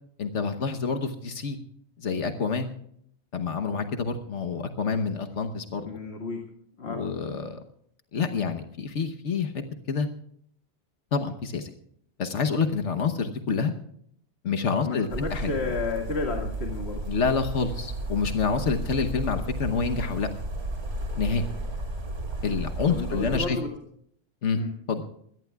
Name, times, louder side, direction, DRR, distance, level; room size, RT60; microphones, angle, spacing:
voice 1, 0.2-1.6 2.0-2.7 3.3-5.9 6.8-7.6 8.1-10.1 11.1-11.7 12.2-13.7 14.4-15.5 17.1-20.3 21.2-21.4 22.4-23.6 24.4-24.6 24.9-25.0, left 5 dB, 80° left, 6 dB, 1.4 m, -27 dB
voice 2, 5.8-6.4 6.8-7.0 14.8-17.0 22.9-23.7 24.5-24.7, left 4 dB, 60° left, 1 dB, 2.3 m, -32 dB
sound 1, 15.1-23.5, right 1 dB, 60° right, 2.6 m, -33 dB
23.5 x 17.5 x 2.4 m, 0.68 s
omnidirectional pair, 1.2 m